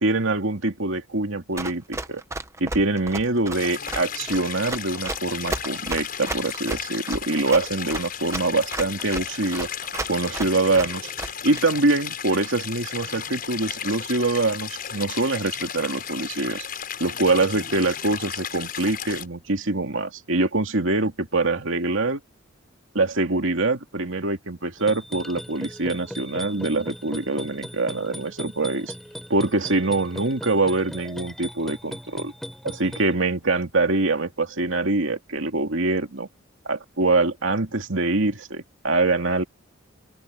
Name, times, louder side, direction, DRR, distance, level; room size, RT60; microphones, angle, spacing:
voice 1, 0.0-2.2 2.6-9.7 10.1-11.1 11.4-16.7 17.0-22.2 22.9-28.9 29.3-32.3 32.6-36.3 36.7-39.4, right 2 dB, 75° right, 2.5 m, -24 dB
Run, 1.6-11.6, right 2 dB, 15° right, 1.0 m, -33 dB
Stream, 3.5-19.3, left 8 dB, 45° left, 6.8 m, -34 dB
sound 1, 24.8-33.1, equal, ahead, 4.9 m, -38 dB
open air
head